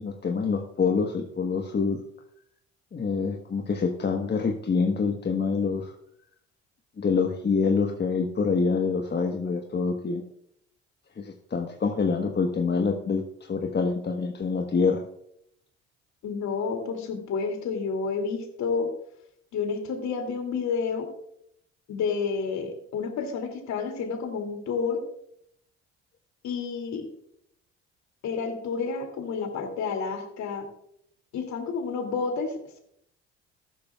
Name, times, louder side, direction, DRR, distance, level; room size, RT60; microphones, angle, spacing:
voice 1, 0.0-2.0 2.9-5.9 7.0-10.2 11.2-15.1, left 5 dB, 30° left, 3 dB, 1.3 m, -26 dB
voice 2, 16.2-18.9 19.5-21.1 21.9-25.0 26.4-27.1 28.2-30.7 31.3-32.5, left 5 dB, 60° left, 4 dB, 2.7 m, -30 dB
14.0 x 12.0 x 2.4 m, 0.71 s
hypercardioid pair, 55°, 32 cm